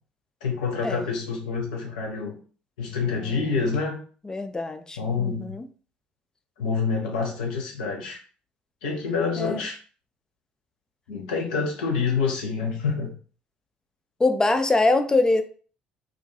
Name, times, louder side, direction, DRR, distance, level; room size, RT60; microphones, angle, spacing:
voice 1, 0.4-2.4 2.8-4.0 5.0-5.6 6.6-8.2 8.8-9.8 11.1-13.1, left 5 dB, 75° left, 1 dB, 0.5 m, -27 dB
voice 2, 3.2-3.6 4.3-5.7 9.4-9.6 14.2-15.4, left 2 dB, 15° left, 7 dB, 0.3 m, -24 dB
2.4 x 2.2 x 2.7 m, 0.40 s
figure-of-eight pair, 50°, 4 cm